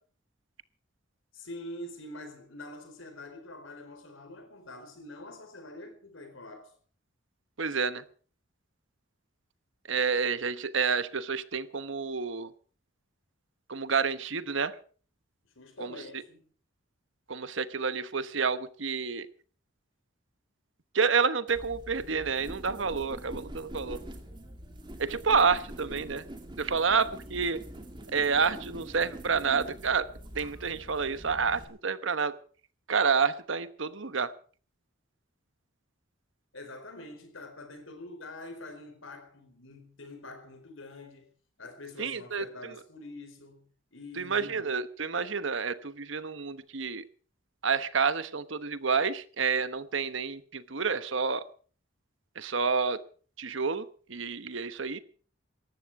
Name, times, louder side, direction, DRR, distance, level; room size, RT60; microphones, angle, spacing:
voice 1, 1.3-6.7 15.4-16.5 36.5-41.3 41.6-44.7, left 2 dB, 80° left, 4.4 m, -45 dB
voice 2, 7.6-8.0 9.9-12.5 13.7-14.7 15.8-16.0 17.3-19.3 20.9-24.0 25.0-26.2 26.6-27.6 28.1-30.1 30.3-32.4 32.9-34.3 42.0-42.7 44.2-47.0 47.6-51.4 52.4-53.0 53.4-55.0, right 5 dB, 70° right, 1.1 m, -29 dB
sound 1, 21.5-31.6, right 1 dB, 25° right, 2.5 m, -44 dB
18.5 x 14.0 x 4.8 m
head